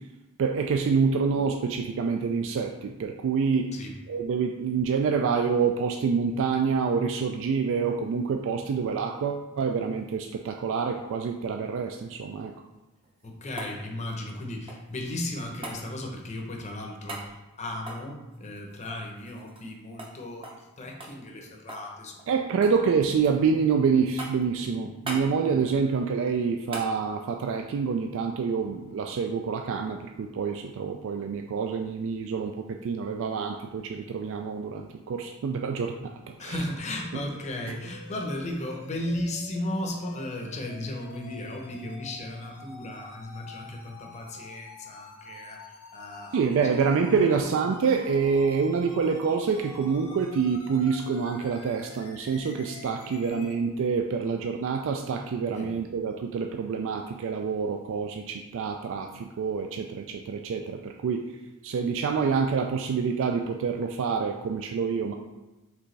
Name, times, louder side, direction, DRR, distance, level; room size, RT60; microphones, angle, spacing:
voice 1, 0.4-3.7 4.1-12.5 22.3-36.6 37.7-37.8 46.3-61.2 61.6-65.1, right 5 dB, 60° right, 4 dB, 0.3 m, -27 dB
sound 1, 12.9-15.0 15.6-15.8 17.1-17.3 17.8-19.7 20.0-20.1 20.4-20.7 21.0-21.9 22.2-22.8 23.2-23.7 24.2-24.5 25.0-25.3 26.7-26.9 29.3-29.4, right 2 dB, 25° right, 0.6 m, -40 dB
voice 2, 13.2-22.4 24.6-24.8 36.4-46.8 47.1-47.3 55.5-55.8, left 1 dB, 30° left, 1 dB, 0.7 m, -36 dB
sound 2, 36.9-53.5, left 3 dB, 75° left, 0.9 m, -48 dB
4.9 x 3.4 x 3.2 m, 1.1 s
head